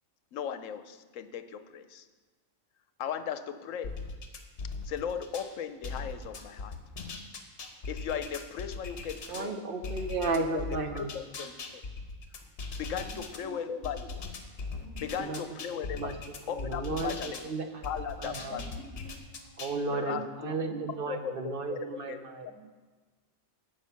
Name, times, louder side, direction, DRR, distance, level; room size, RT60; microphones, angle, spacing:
voice 1, 0.3-2.0 3.0-4.0 4.8-6.7 7.9-9.6 10.5-11.5 12.8-14.3 15.0-16.0 16.5-17.4 17.8-18.9 19.9-20.5 21.1-21.8 22.1-22.2, left 8 dB, 75° left, 10 dB, 1.0 m, -37 dB
sound 1, 3.8-5.5 5.8-9.5 9.8-13.4 13.8-17.5 17.8-19.8, left 3 dB, 50° left, 1.3 m, -40 dB
voice 2, 9.3-11.2 15.2-15.4 15.7-16.2 16.5-17.9 18.2-18.6 19.6-22.5, right 3 dB, 45° right, 5 dB, 1.0 m, -34 dB
voice 3, 13.0-14.0 14.8-15.6 18.4-19.6 19.9-21.0 22.4-22.6, right 4 dB, 10° left, -5 dB, 1.6 m, -49 dB
15.0 x 5.5 x 5.7 m, 1.4 s
omnidirectional pair, 1.4 m